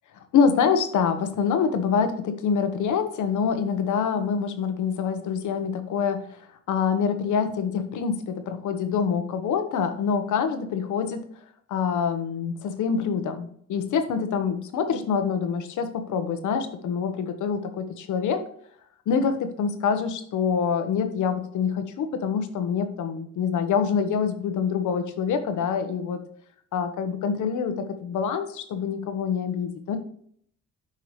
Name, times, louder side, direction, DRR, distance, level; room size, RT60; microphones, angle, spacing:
voice 1, 0.3-11.2 11.7-18.4 19.1-26.2 26.7-30.0, left 6 dB, 75° left, 8 dB, 1.2 m, -26 dB
9.3 x 5.6 x 3.2 m, 0.64 s
cardioid pair, 90°, 30 cm